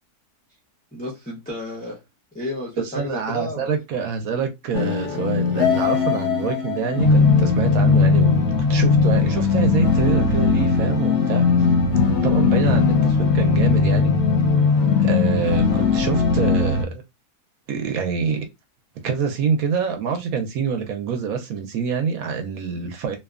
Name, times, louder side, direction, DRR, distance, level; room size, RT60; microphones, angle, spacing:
voice 1, 0.9-2.0 2.3-3.7 12.5-12.8, left 1 dB, 15° left, 0.3 m, -32 dB
voice 2, 2.8-8.4 8.7-11.5 12.2-14.1 15.0-17.0 17.7-18.4 19.0-23.2, right 6 dB, 70° right, 1.0 m, -26 dB
sound 1, 4.7-16.8, left 5 dB, 60° left, 0.7 m, -18 dB
2.7 x 2.2 x 2.3 m
omnidirectional pair, 1.7 m